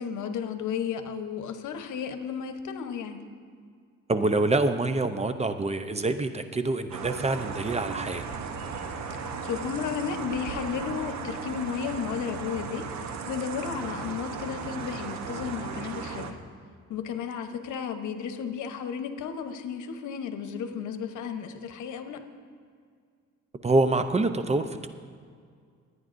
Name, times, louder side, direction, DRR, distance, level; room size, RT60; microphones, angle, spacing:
voice 1, 0.0-3.2 9.4-12.9 13.2-16.4 16.9-22.2, left 7 dB, 75° left, 7 dB, 1.0 m, -33 dB
voice 2, 4.1-8.2 23.6-24.9, right 2 dB, 20° right, 9 dB, 0.6 m, -26 dB
sound 1, 6.9-16.3, right 5 dB, 65° right, 1.0 m, -36 dB
25.0 x 9.5 x 2.6 m, 2.1 s
cardioid pair, 90°, 30 cm